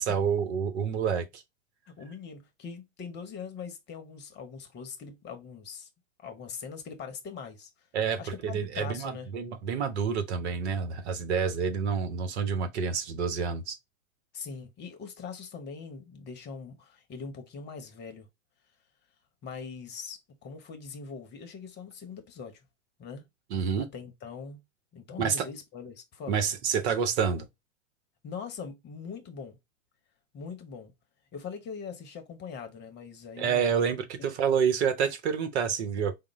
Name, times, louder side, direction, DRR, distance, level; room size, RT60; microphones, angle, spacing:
voice 1, 0.0-1.4 7.9-13.8 23.5-23.9 25.2-25.5 26.3-27.5 33.4-36.2, right 6 dB, 55° right, 1.0 m, -28 dB
voice 2, 1.9-5.9 6.2-7.7 8.2-9.3 14.3-18.3 19.4-22.6 23.0-23.3 23.8-24.6 24.9-26.6 28.2-29.6 30.3-30.9 31.3-33.7 34.2-34.3, left 5 dB, 25° left, 1.0 m, -42 dB
5.1 x 2.2 x 3.1 m
hypercardioid pair, 105°, 40 cm